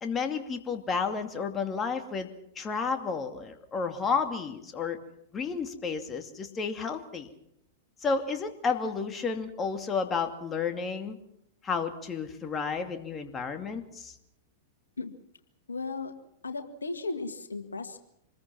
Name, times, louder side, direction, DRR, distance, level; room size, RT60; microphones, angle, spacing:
voice 1, 0.0-5.0 5.3-7.3 8.0-11.2 11.6-14.1, left 5 dB, 20° left, 6 dB, 2.5 m, -31 dB
voice 2, 15.7-16.1 16.4-18.0, left 3 dB, 85° left, 7 dB, 1.8 m, -35 dB
26.0 x 21.0 x 6.1 m, 0.77 s
hypercardioid pair, 100°, 0 cm